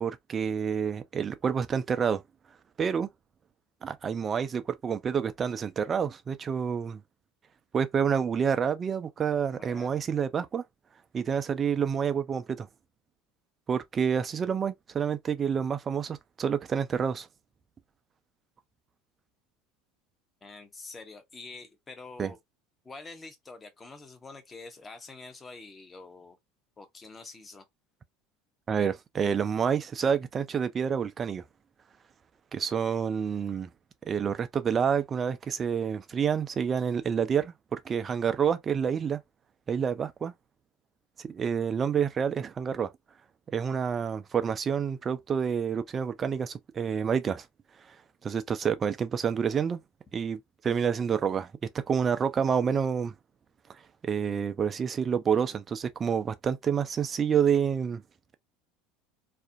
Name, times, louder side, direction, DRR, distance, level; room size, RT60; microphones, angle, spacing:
voice 1, 0.0-2.2 2.8-3.1 3.8-7.0 7.7-10.6 11.1-12.7 13.7-17.3 22.2-22.3 28.7-31.4 32.5-33.7 34.1-39.2 39.7-40.3 41.2-42.9 43.5-47.5 48.2-49.8 50.1-51.5 51.9-53.1 54.0-58.0, right 7 dB, 30° right, 0.4 m, -28 dB
voice 2, 9.6-10.0 20.4-22.4 22.8-26.4 26.8-27.7, left 3 dB, 20° left, 0.7 m, -46 dB
2.4 x 2.1 x 2.5 m
hypercardioid pair, 75°, 0 cm